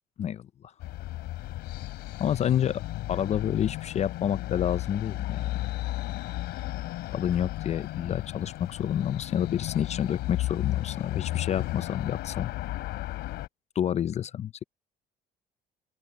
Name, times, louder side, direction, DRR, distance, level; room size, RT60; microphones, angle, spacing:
sound 1, 0.8-13.5, left 16 dB, 85° left, 3.0 m, -34 dB
voice 1, 2.2-2.8 3.1-5.7 7.1-12.5 13.8-14.6, left 10 dB, 40° left, 0.4 m, -29 dB
open air
cardioid pair, 110°, 17 cm